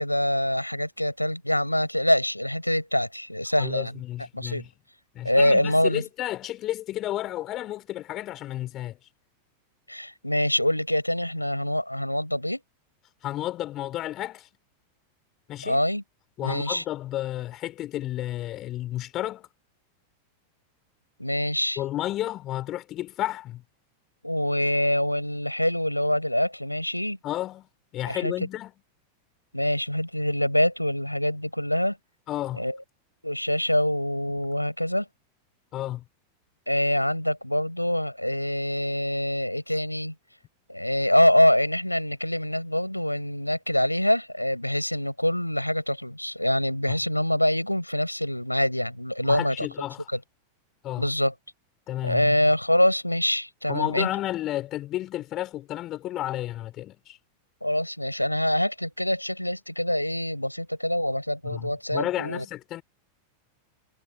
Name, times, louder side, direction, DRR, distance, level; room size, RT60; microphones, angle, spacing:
voice 1, 0.0-4.0 4.3-4.6 5.2-6.0 9.9-12.6 15.6-16.0 16.4-16.8 21.2-21.8 24.2-27.2 28.1-28.3 29.5-32.0 32.5-32.8 33.2-35.1 36.7-40.1 40.7-49.7 50.1-50.2 51.0-51.3 52.0-54.1 57.6-62.4, left 1 dB, 90° left, 4.9 m, -25 dB
voice 2, 3.6-4.7 5.1-9.0 13.2-14.5 15.5-15.8 16.4-19.5 21.8-23.6 27.2-27.7 27.9-28.7 32.3-32.6 35.7-36.0 46.9-47.0 49.2-50.1 50.8-51.1 51.9-52.4 53.7-57.2 61.4-62.8, left 14 dB, 35° left, 4.9 m, -32 dB
figure-of-eight pair, 90°, 0 cm